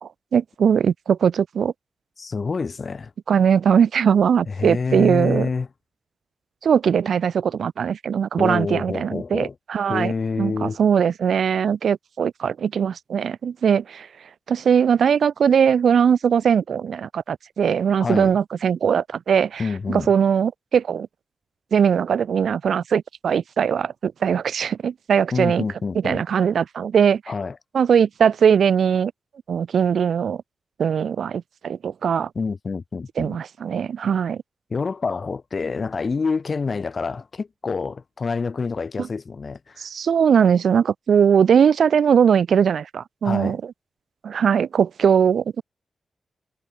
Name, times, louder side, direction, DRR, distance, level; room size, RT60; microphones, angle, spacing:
voice 1, 0.0-1.7 3.3-5.5 6.6-14.1 14.5-21.1 21.7-25.6 26.0-27.2 27.7-29.1 29.5-30.4 30.8-32.3 33.2-34.4 39.0-39.1 39.8-43.6 44.2-45.6, right 7 dB, 75° right, 0.8 m, -20 dB
voice 2, 2.2-3.1 4.5-5.7 8.4-9.5 9.9-10.8 18.0-18.4 19.6-20.1 25.3-26.2 27.3-27.6 32.4-33.4 34.7-39.9 43.2-43.6, left 4 dB, 35° left, 2.3 m, -27 dB
wide cardioid pair, 165°, 0 cm